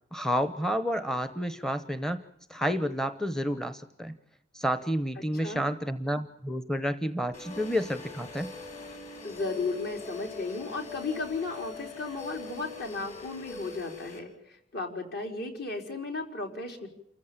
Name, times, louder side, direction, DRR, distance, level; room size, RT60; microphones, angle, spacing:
voice 1, 0.1-2.2 2.5-4.2 4.5-8.5, equal, 5° left, 11 dB, 0.8 m, -30 dB
sound 1, 7.3-14.2, left 4 dB, 40° left, 5.7 m, -43 dB
voice 2, 9.2-14.3 14.7-16.9, left 3 dB, 55° left, 3 dB, 4.4 m, -34 dB
29.0 x 15.0 x 8.9 m, 0.78 s
head